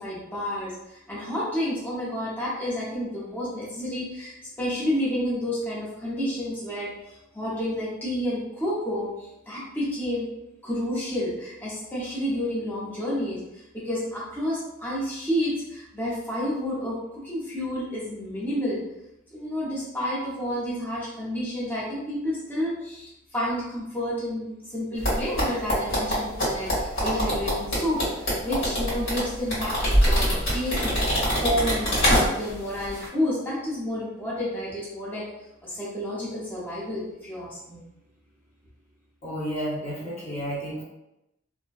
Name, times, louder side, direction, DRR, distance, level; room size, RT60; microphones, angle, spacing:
voice 1, 0.0-10.3 10.6-18.8 19.3-35.3 35.6-37.8, equal, 10° left, -8 dB, 0.6 m, -30 dB
sound 1, 25.0-32.6 32.9-33.0, equal, 70° left, 1.4 m, -24 dB
voice 2, 39.2-40.8, equal, 35° left, -9 dB, 1.1 m, -31 dB
2.5 x 2.1 x 2.2 m, 0.89 s
head